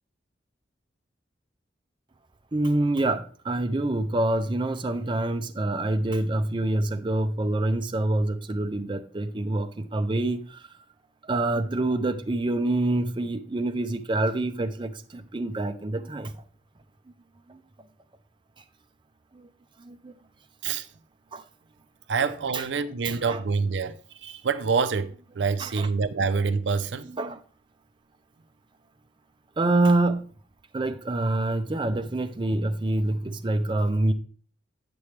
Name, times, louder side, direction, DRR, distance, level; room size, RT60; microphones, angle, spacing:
voice 1, 2.5-10.7 11.3-16.3 17.5-17.6 19.3-19.5 19.8-20.1 21.3-21.4 22.2-22.3 22.5-22.7 23.0-23.4 25.6-25.9 27.0-27.4 29.6-30.3 30.7-34.1, right 2 dB, 25° right, 0.5 m, -26 dB
voice 2, 22.1-27.1, right 5 dB, 75° right, 0.5 m, -26 dB
8.7 x 6.9 x 3.2 m
head